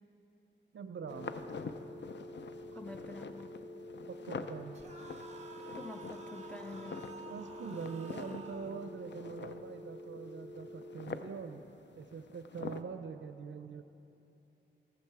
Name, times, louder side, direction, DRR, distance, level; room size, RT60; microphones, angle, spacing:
voice 1, 0.7-1.5 2.7-2.8 4.1-4.8 7.3-11.6 11.9-13.8, right 6 dB, 70° right, 9 dB, 0.4 m, -44 dB
sound 1, 1.0-11.0, left 1 dB, 25° left, 1.6 m, -49 dB
sound 2, 1.1-12.8, left 5 dB, 60° left, 0.5 m, -47 dB
voice 2, 2.7-3.6 5.7-7.0, left 2 dB, 5° left, 3 dB, 0.6 m, -47 dB
sound 3, 4.7-8.8, right 4 dB, 35° right, 1.0 m, -51 dB
17.5 x 7.2 x 4.7 m, 2.9 s
wide cardioid pair, 95°, 20 cm